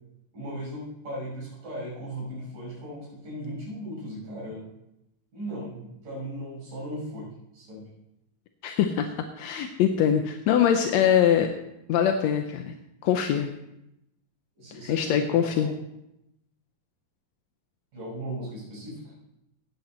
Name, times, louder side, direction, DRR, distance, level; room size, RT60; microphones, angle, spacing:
voice 1, 0.3-4.7 5.3-7.8 14.6-15.7 17.9-19.0, equal, 80° right, -6 dB, 7.3 m, -37 dB
voice 2, 8.6-11.5 11.9-12.7 13.0-13.5 14.9-15.7, left 9 dB, 75° left, 5 dB, 1.7 m, -23 dB
17.5 x 8.4 x 4.3 m, 0.85 s
omnidirectional pair, 3.7 m